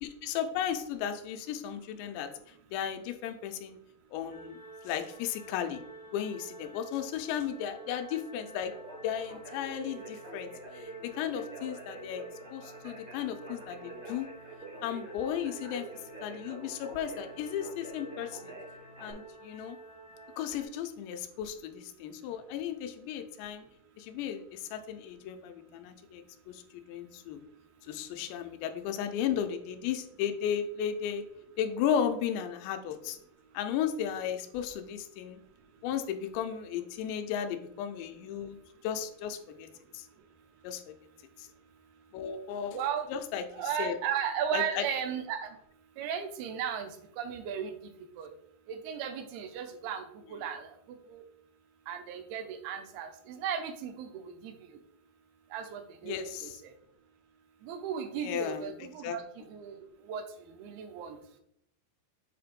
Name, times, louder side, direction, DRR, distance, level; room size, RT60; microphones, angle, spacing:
voice 1, 0.0-2.3 2.7-3.8 4.1-5.8 6.1-8.7 9.0-10.5 10.7-12.2 12.5-14.3 14.8-15.9 16.2-18.6 19.0-19.8 20.4-23.6 24.0-27.4 27.8-31.2 31.6-33.2 33.5-35.4 35.8-38.6 38.8-39.7 39.9-40.1 40.6-40.9 41.4-41.5 42.1-42.8 43.1-44.0 44.5-44.9 56.0-56.6 58.2-58.7 59.0-59.2, left 9 dB, 90° left, 7 dB, 2.8 m, -35 dB
sound 1, 4.3-20.6, right 2 dB, 30° left, 0.3 m, -51 dB
Conversation, 8.6-19.1, right 2 dB, 45° right, 0.8 m, -47 dB
voice 2, 42.7-43.1 43.5-45.6 46.0-46.9 47.2-47.7 48.2-48.3 48.7-50.0 50.3-50.7 51.1-51.2 51.9-54.5 55.5-56.2 56.4-56.5 57.6-59.2 59.5-60.2 60.6-61.2, right 8 dB, 75° right, 7 dB, 2.5 m, -35 dB
7.4 x 2.9 x 5.1 m, 0.73 s
omnidirectional pair, 4.9 m